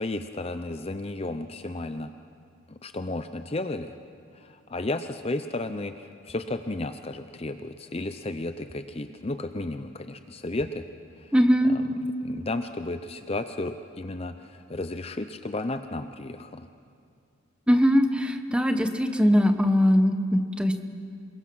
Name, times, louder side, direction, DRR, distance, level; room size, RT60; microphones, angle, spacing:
voice 1, 0.0-2.1 2.7-4.0 4.3-10.9 11.2-11.3 11.7-16.7, left 2 dB, 30° left, 9 dB, 0.6 m, -33 dB
voice 2, 11.3-11.7 17.7-20.8, equal, 5° right, 7 dB, 1.0 m, -21 dB
27.5 x 22.0 x 6.2 m, 2.4 s
head